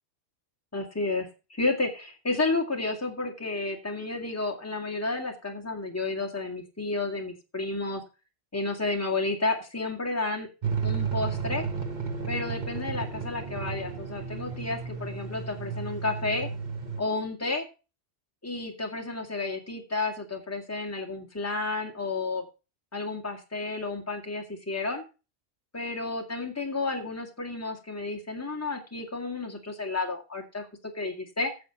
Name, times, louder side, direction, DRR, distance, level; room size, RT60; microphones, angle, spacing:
voice 1, 0.7-8.0 8.5-10.5 10.8-11.7 12.3-16.5 17.0-17.7 18.4-22.4 22.9-25.0 25.7-30.7 30.9-31.5, left 3 dB, 15° left, 2 dB, 1.9 m, -31 dB
sound 1, 10.6-17.0, right 5 dB, 40° right, 1.2 m, -33 dB
10.5 x 7.0 x 5.8 m, 0.32 s
omnidirectional pair, 1.2 m